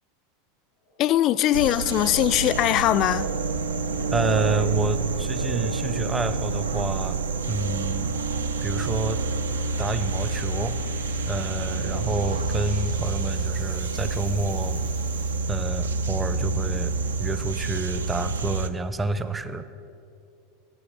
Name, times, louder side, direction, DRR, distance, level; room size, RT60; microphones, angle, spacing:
sound 1, 0.8-15.4, equal, 90° right, 3.4 m, -50 dB
voice 1, 1.0-3.3, left 13 dB, 40° left, 0.3 m, -21 dB
sound 2, 1.5-18.7, right 3 dB, 70° right, 0.4 m, -28 dB
voice 2, 4.1-7.2 7.5-8.1 8.6-9.2 9.8-10.8 11.2-14.8 15.5-16.9 17.2-19.6, right 2 dB, 15° right, 0.6 m, -29 dB
9.9 x 7.6 x 8.6 m
figure-of-eight pair, 85°, 0 cm